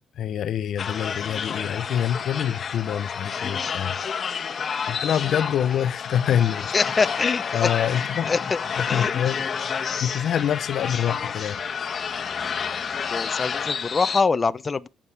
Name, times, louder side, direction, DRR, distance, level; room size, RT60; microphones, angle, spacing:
voice 1, 0.2-3.9 4.9-6.7 7.5-8.3 8.8-9.4 10.0-11.6, left 9 dB, 70° left, 0.7 m, -25 dB
sound 1, 0.8-14.2, left 6 dB, 50° left, 1.2 m, -29 dB
voice 2, 6.7-8.6 8.9-9.3 13.1-14.9, left 4 dB, 30° left, 0.7 m, -25 dB
17.5 x 7.4 x 3.4 m
cardioid pair, 90°, 0 cm